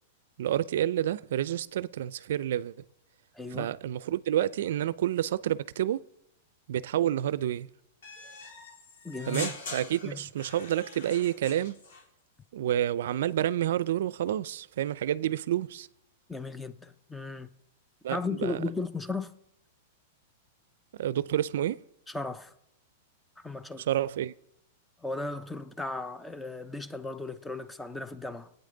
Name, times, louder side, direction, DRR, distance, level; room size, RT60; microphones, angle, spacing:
voice 1, 0.4-2.8 3.5-6.0 6.7-7.7 9.3-11.8 12.5-15.9 18.0-18.6 21.0-21.8 23.8-24.3, right 11 dB, 75° right, 0.4 m, -29 dB
voice 2, 3.3-3.7 9.0-9.5 10.0-10.2 16.3-17.5 18.1-19.3 22.1-22.5 23.4-23.9 25.0-28.5, left 3 dB, 5° left, 0.6 m, -36 dB
sound 1, 8.0-12.0, left 3 dB, 75° left, 3.8 m, -42 dB
21.5 x 9.0 x 3.9 m
hypercardioid pair, 145°, 0 cm